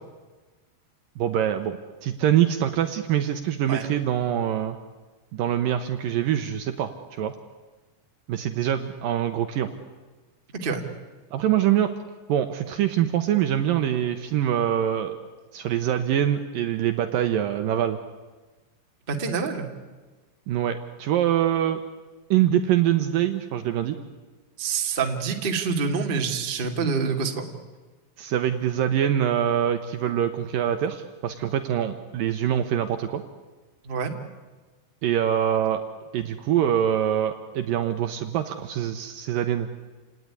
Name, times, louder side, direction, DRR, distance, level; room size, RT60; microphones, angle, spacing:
voice 1, 1.2-4.8 5.3-7.4 8.3-9.7 11.3-11.9 12.3-15.1 15.5-18.0 20.5-21.8 22.3-24.0 28.2-33.2 35.0-35.8 36.1-39.7, right 10 dB, 70° right, 7 dB, 2.2 m, -24 dB
voice 2, 10.5-10.8 19.1-19.7 24.6-27.5 33.8-34.1, right 5 dB, 30° right, 3 dB, 1.0 m, -26 dB
29.0 x 18.5 x 9.8 m, 1.3 s
omnidirectional pair, 4.9 m